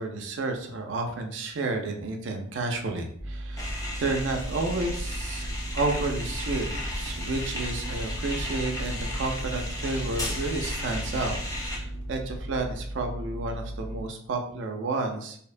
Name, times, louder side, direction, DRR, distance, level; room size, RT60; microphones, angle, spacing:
voice 1, 0.0-6.7 7.0-15.4, right 3 dB, 75° right, 4 dB, 0.4 m, -31 dB
sound 1, 3.2-14.0, right 1 dB, 60° left, 0.6 m, -37 dB
sound 2, 3.6-11.8, left 1 dB, 15° left, 0.4 m, -34 dB
2.7 x 2.0 x 2.4 m, 0.63 s
head